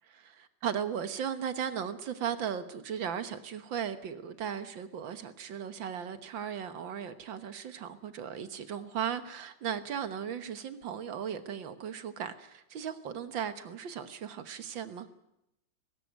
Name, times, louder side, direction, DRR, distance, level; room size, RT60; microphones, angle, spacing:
voice 1, 0.1-15.1, right 8 dB, 80° right, 11 dB, 2.0 m, -37 dB
18.5 x 17.0 x 9.3 m, 0.83 s
omnidirectional pair, 2.0 m